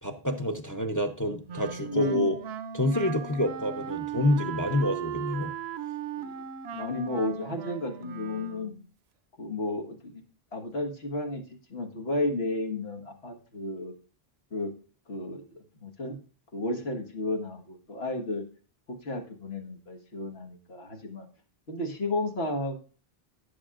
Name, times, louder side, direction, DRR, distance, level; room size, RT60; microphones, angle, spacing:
voice 1, 0.0-2.3 2.7-5.5, left 1 dB, 20° left, 5 dB, 0.7 m, -27 dB
Wind instrument woodwind instrument, 1.5-8.9, right 8 dB, 85° right, 0.9 m, -37 dB
voice 2, 1.8-2.3 6.2-6.4 6.7-8.7 9.4-10.2 10.5-11.4 11.7-13.9 14.5-14.7 15.1-16.2 16.5-18.5 18.9-21.3 21.7-22.8, left 2 dB, 85° left, 3 dB, 1.8 m, -32 dB
15.5 x 7.3 x 2.5 m, 0.39 s
omnidirectional pair, 1.0 m